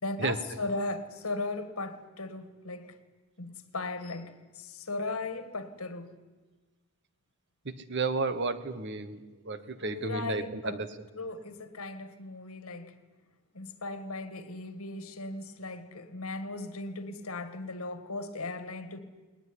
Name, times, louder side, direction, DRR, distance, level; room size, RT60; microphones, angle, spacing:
voice 1, 0.0-3.0 3.4-6.2 9.8-10.8 11.1-13.0 13.5-19.0, left 2 dB, 85° left, 1.9 m, -37 dB
voice 2, 7.6-10.9, right 3 dB, 55° right, 1.3 m, -32 dB
20.0 x 19.5 x 10.0 m
head